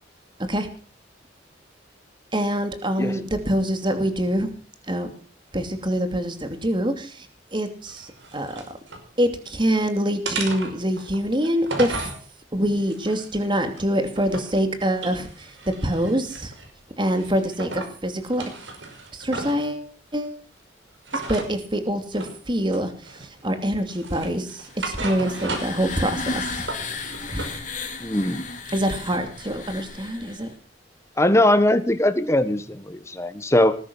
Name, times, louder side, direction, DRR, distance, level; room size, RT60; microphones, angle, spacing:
voice 1, 2.3-4.5 4.9-5.1 5.5-7.3 7.5-8.6 9.2-12.1 12.5-15.5 15.8-16.5 17.0-18.4 19.1-19.8 20.1-20.4 21.3-22.9 23.4-26.4 26.8-26.9 27.3-27.6 28.7-30.5, equal, 25° right, 8 dB, 2.7 m, -25 dB
sound 1, 7.9-9.1 9.5-9.8 10.2-12.2 12.8-14.6 14.9-16.7 17.1-17.9 18.3-19.7 21.0-21.5 22.1-22.4 22.7-23.4 23.9-25.9 26.2-27.5, right 3 dB, 90° right, 5.5 m, -35 dB
sound 2, 24.7-30.5, left 3 dB, 45° left, 4.0 m, -34 dB
voice 2, 28.0-28.5 31.2-33.8, left 1 dB, 15° left, 11 dB, 1.2 m, -20 dB
20.0 x 11.0 x 6.3 m, 0.40 s
head